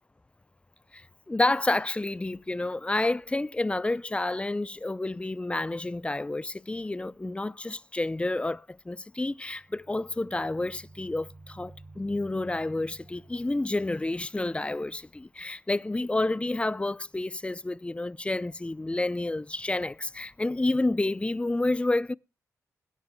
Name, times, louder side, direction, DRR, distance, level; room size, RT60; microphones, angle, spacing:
voice 1, 0.9-22.1, left 2 dB, 20° left, 0.5 m, -29 dB
sound 1, 9.4-14.2, right 2 dB, 35° right, 5.7 m, -52 dB
21.0 x 10.5 x 2.2 m
supercardioid pair, 50°, 6 cm